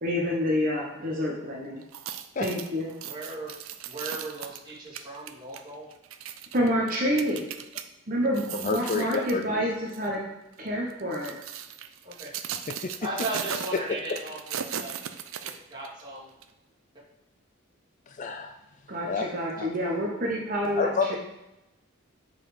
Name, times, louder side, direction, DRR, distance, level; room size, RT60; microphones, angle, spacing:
voice 1, 0.0-1.8 2.4-2.9 6.5-7.4 8.1-10.2 10.6-11.3 18.9-21.2, equal, 40° right, -2 dB, 1.1 m, -28 dB
sound 1, 1.8-7.8 8.3-9.4 9.9-10.1 10.9-16.0 16.4-16.5, right 9 dB, 75° right, 0.5 m, -37 dB
voice 2, 3.0-3.5 3.8-5.9 9.1-9.2 12.0-12.3 13.0-15.0 15.4-16.3, right 2 dB, 20° right, -8 dB, 2.6 m, -37 dB
voice 3, 8.5-9.5 12.8-12.9 18.1-18.5 19.1-19.3 19.6-19.7 20.8-21.2, left 4 dB, 35° left, 6 dB, 0.4 m, -29 dB
7.5 x 4.3 x 4.9 m, 0.96 s
head